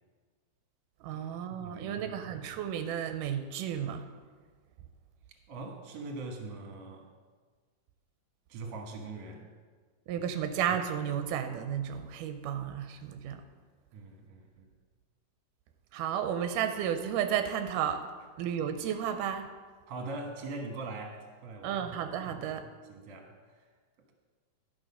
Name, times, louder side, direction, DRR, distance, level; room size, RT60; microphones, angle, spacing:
voice 1, 1.0-4.1 10.1-13.4 15.9-18.0 18.4-19.5 21.6-22.6, right 9 dB, 90° right, 7 dB, 2.2 m, -33 dB
voice 2, 1.6-2.3 5.5-7.1 8.5-9.5 10.1-10.2 13.9-14.7 19.9-21.8 22.2-22.5 22.9-23.6, right 3 dB, 60° right, 2 dB, 2.3 m, -42 dB
11.5 x 6.4 x 5.6 m, 1.5 s
omnidirectional pair, 3.7 m